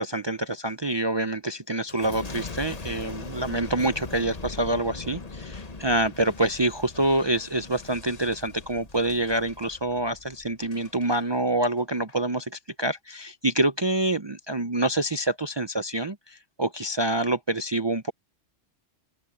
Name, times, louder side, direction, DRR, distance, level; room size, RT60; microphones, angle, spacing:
voice 1, 0.0-18.1, right 1 dB, 35° right, 0.5 m, -26 dB
Boom, 1.9-11.2 11.8-12.2, left 3 dB, 35° left, 1.3 m, -41 dB
open air
omnidirectional pair, 1.2 m